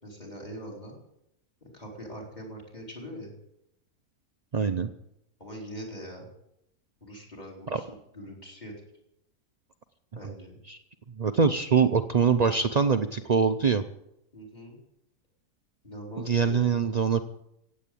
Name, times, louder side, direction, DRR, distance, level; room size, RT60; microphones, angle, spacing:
voice 1, 0.0-1.0 1.6-3.3 5.4-6.3 7.0-8.7 10.1-10.6 14.3-14.8 15.8-16.7, equal, 25° left, -1 dB, 4.4 m, -42 dB
voice 2, 4.5-4.9 7.7-7.8 10.7-10.8 11.2-13.8 16.2-17.2, right 6 dB, 70° right, 8 dB, 0.3 m, -23 dB
16.5 x 8.6 x 8.5 m, 0.82 s
omnidirectional pair, 1.6 m